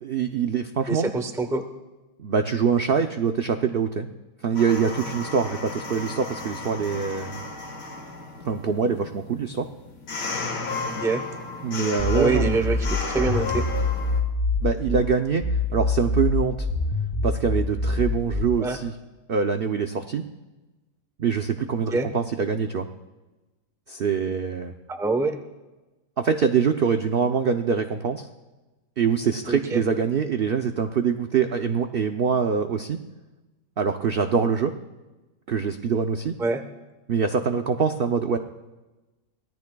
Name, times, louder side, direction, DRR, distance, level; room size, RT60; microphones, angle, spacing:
voice 1, 0.0-1.1 2.2-4.1 4.4-7.4 8.4-9.7 11.6-12.6 14.6-16.7 17.2-18.9 19.3-20.2 21.2-22.9 23.9-24.7 26.2-28.3 29.0-33.0 33.8-34.7 35.5-36.4 37.1-38.4, right 6 dB, 75° right, 6 dB, 0.5 m, -24 dB
voice 2, 0.9-1.7 10.9-11.2 12.1-13.6 18.6-18.8 21.9-22.1 24.9-25.4 29.5-29.8 36.4-36.6, right 3 dB, 5° right, 6 dB, 0.4 m, -25 dB
sound 1, 4.6-14.2, left 3 dB, 80° left, 2.2 m, -34 dB
sound 2, 12.0-15.0 15.4-18.4, left 3 dB, 15° left, 1.7 m, -25 dB
24.0 x 17.5 x 2.3 m, 1.1 s
omnidirectional pair, 1.8 m